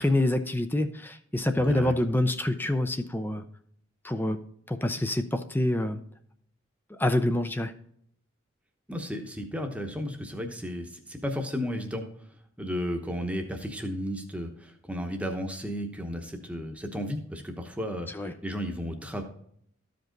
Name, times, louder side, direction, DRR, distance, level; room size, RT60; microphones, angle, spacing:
voice 1, 0.0-3.4 4.0-4.4 4.7-6.0 6.9-7.7 18.1-18.3, left 1 dB, 10° left, 9 dB, 0.5 m, -26 dB
voice 2, 1.6-1.9 8.9-12.0 12.6-19.2, equal, 5° right, 4 dB, 0.9 m, -33 dB
13.5 x 5.2 x 3.8 m, 0.67 s
head